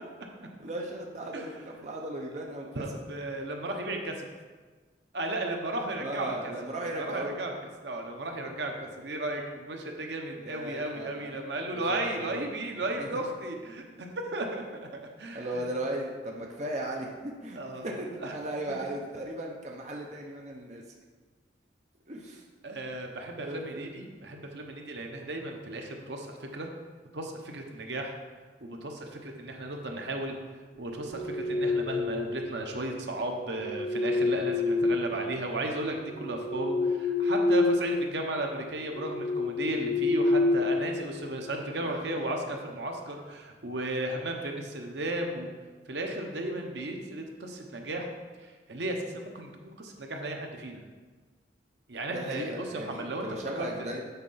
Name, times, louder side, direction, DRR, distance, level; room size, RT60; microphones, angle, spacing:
voice 1, 0.4-2.8 6.0-7.4 10.4-11.4 11.9-12.4 13.0-13.2 15.3-20.8 22.1-22.4 23.4-24.0 41.8-42.3 52.1-54.1, right 1 dB, 40° right, -1 dB, 0.8 m, -37 dB
voice 2, 2.7-4.3 5.1-6.5 6.8-7.5 7.8-14.9 15.2-15.7 17.6-18.3 18.7-18.8 22.6-26.7 27.1-28.2 28.6-30.3 30.8-45.5 45.9-48.1 48.4-50.8 51.9-53.3 53.6-53.9, right 1 dB, 70° right, 2 dB, 1.0 m, -35 dB
sound 1, 30.9-32.4 33.4-35.6 36.0-37.9 38.2-38.4 38.9-41.3, left 3 dB, 85° left, 1.0 m, -28 dB
8.0 x 4.5 x 5.6 m, 1.4 s
head